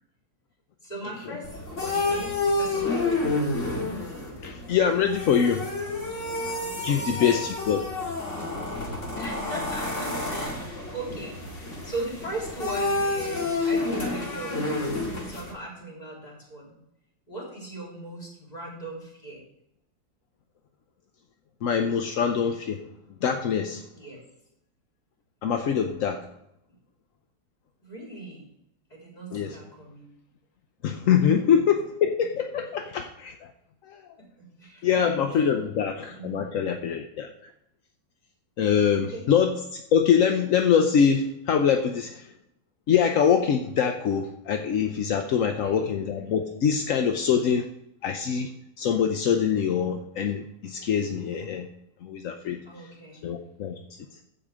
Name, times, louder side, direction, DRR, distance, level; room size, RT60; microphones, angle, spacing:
voice 1, 0.8-3.7 6.8-7.4 7.9-8.0 9.1-11.4 11.8-16.8 17.3-19.4 23.9-24.2 27.8-28.5 28.9-30.1 34.2-35.0 35.3-35.5 36.1-36.6 38.9-39.3 45.4-45.9 52.7-53.3, right 2 dB, 20° left, -3 dB, 3.6 m, -39 dB
sound 1, 1.4-15.5, left 2 dB, 40° left, 2.3 m, -29 dB
voice 2, 4.4-5.7 6.8-7.8 21.6-22.8 23.2-23.8 25.4-26.3 29.3-29.6 30.8-33.5 33.9-34.0 34.8-37.5 38.6-42.3 42.9-47.7 48.0-48.5 48.8-51.7 52.0-52.6 53.2-53.8, left 7 dB, 60° left, 5 dB, 0.9 m, -24 dB
14.5 x 5.1 x 4.9 m, 0.81 s
omnidirectional pair, 2.0 m